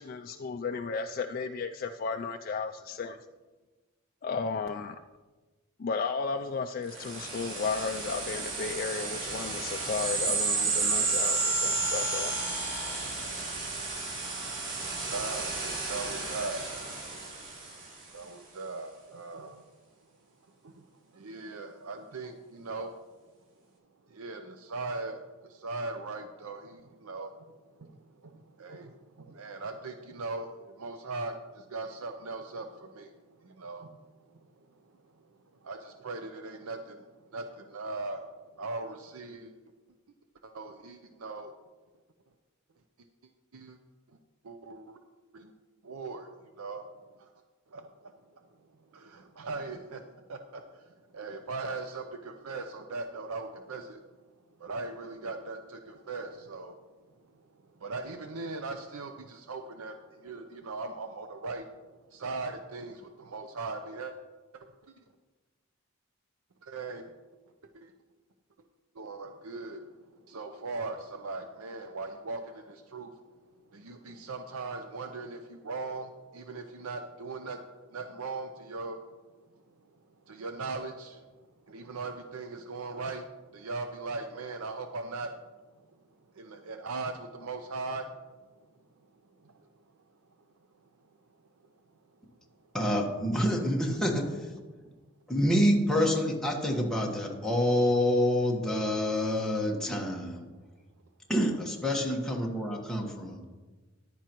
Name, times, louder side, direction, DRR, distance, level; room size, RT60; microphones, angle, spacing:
voice 1, 0.0-3.2 4.2-5.0 5.8-12.4, left 5 dB, 40° left, 5 dB, 0.3 m, -34 dB
sound 1, 6.9-18.0, right 3 dB, 60° right, 3.1 m, -32 dB
voice 2, 14.4-16.7 18.1-19.7 20.6-20.8 21.1-23.0 24.1-27.5 27.8-33.1 33.4-34.9 35.2-35.3 35.6-39.5 40.4-41.5 43.5-43.8 44.1-44.2 44.4-45.0 45.3-45.5 45.8-46.9 47.2-47.3 47.7-48.1 48.9-54.0 54.6-57.3 57.8-64.1 64.5-64.7 66.6-67.1 67.7-67.9 69.0-69.8 70.1-73.1 73.7-77.6 77.9-79.0 80.3-81.3 81.7-85.3 86.3-88.1 89.4-89.6 101.9-102.6, right 3 dB, 90° right, 6 dB, 0.6 m, -39 dB
voice 3, 92.7-94.5 95.3-100.5 101.3-103.4, equal, ahead, -2 dB, 1.3 m, -27 dB
14.0 x 10.5 x 3.0 m, 1.3 s
head